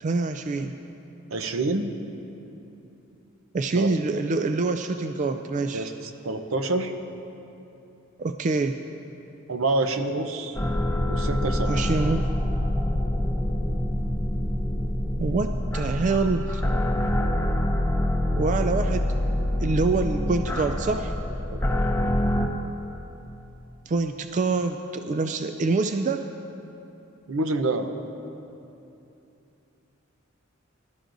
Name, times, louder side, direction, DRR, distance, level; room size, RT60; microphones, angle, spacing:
voice 1, 0.0-0.8 3.5-5.9 8.2-8.8 11.7-12.3 15.2-16.6 18.4-19.1 19.6-21.1 23.9-26.3, right 3 dB, 40° right, 7 dB, 0.3 m, -25 dB
voice 2, 1.3-1.9 3.7-3.9 5.7-6.9 9.5-10.6 11.1-11.8 21.5-21.6 27.3-27.9, right 2 dB, 75° right, 7 dB, 0.7 m, -27 dB
sound 1, 10.6-22.5, left 1 dB, 10° left, 0.8 m, -25 dB
20.0 x 12.5 x 2.6 m, 2.9 s
head